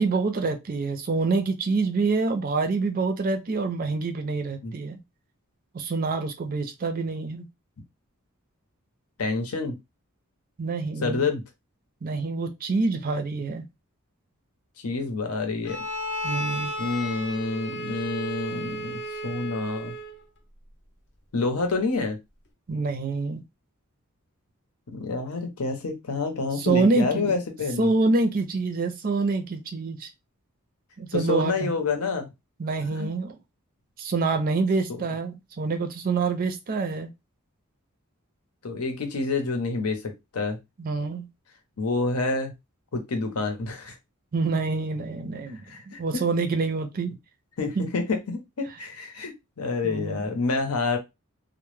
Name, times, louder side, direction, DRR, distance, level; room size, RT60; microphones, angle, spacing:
voice 1, 0.0-5.0 5.7-7.4 10.6-11.3 12.0-13.7 16.2-16.7 22.7-23.4 26.6-27.3 27.8-30.1 31.0-31.8 32.6-33.4 34.0-37.1 40.8-41.3 44.3-47.1 47.8-47.9 49.8-50.2, right 3 dB, 40° right, 0.4 m, -26 dB
voice 2, 9.2-9.7 11.0-11.4 14.8-15.8 16.8-19.9 21.3-22.2 24.9-27.9 31.1-32.3 32.9-33.1 34.9-35.1 38.6-40.6 41.8-42.5 42.9-43.9 45.5-46.2 47.6-49.3 49.6-51.0, left 3 dB, 90° left, 0.7 m, -28 dB
Bowed string instrument, 15.6-20.2, equal, 55° left, 0.6 m, -33 dB
2.1 x 2.0 x 3.1 m
head